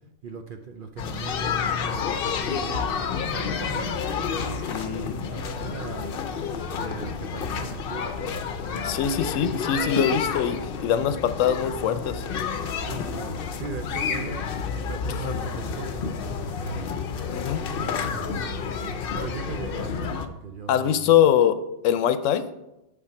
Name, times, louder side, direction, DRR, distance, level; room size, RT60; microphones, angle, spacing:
voice 1, 0.2-2.9 3.2-6.1 6.7-8.7 12.8-16.9 18.0-21.2, right 5 dB, 60° right, 6 dB, 0.6 m, -39 dB
sound 1, 1.0-20.3, left 6 dB, 55° left, 0.7 m, -30 dB
Wind instrument woodwind instrument, 2.7-6.0, left 3 dB, 25° left, 0.3 m, -45 dB
voice 2, 4.7-5.3 8.8-12.2 15.0-15.3 17.3-17.7 20.7-21.6 21.8-22.5, left 9 dB, 80° left, 12 dB, 0.9 m, -23 dB
8.6 x 3.9 x 5.8 m, 0.93 s
omnidirectional pair, 1.3 m